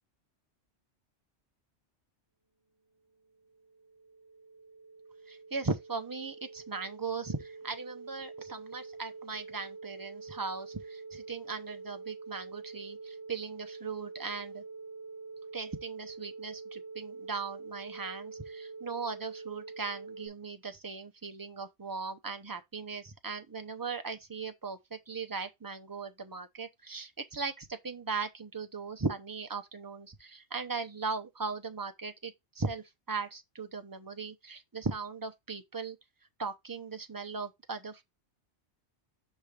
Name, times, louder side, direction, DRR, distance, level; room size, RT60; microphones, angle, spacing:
sound 1, 3.2-20.3, right 4 dB, 70° left, 2.1 m, -46 dB
voice 1, 5.3-14.6 15.5-36.0 36.4-38.0, right 4 dB, 25° right, 0.5 m, -38 dB
5.8 x 3.3 x 4.9 m
omnidirectional pair, 1.2 m